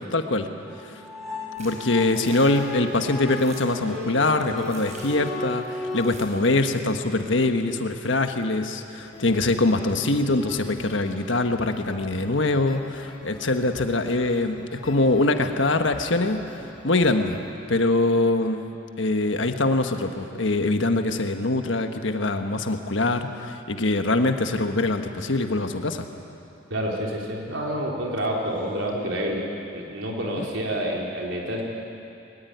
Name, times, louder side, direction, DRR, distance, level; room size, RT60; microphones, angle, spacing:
voice 1, 0.1-0.5 0.8-1.0 1.6-16.4 16.8-17.4 17.7-18.7 19.0-26.1 30.4-30.5, left 2 dB, 70° left, 6 dB, 1.5 m, -23 dB
sound 1, 0.7-6.0, left 2 dB, ahead, 5.8 m, -35 dB
sound 2, 1.5-6.5, right 2 dB, 35° right, 5.1 m, -46 dB
sound 3, 8.9-17.5, left 2 dB, 30° left, 3.6 m, -44 dB
voice 2, 26.7-29.4 29.7-31.6, equal, 75° right, -1 dB, 4.1 m, -28 dB
21.5 x 19.5 x 9.4 m, 2.7 s
head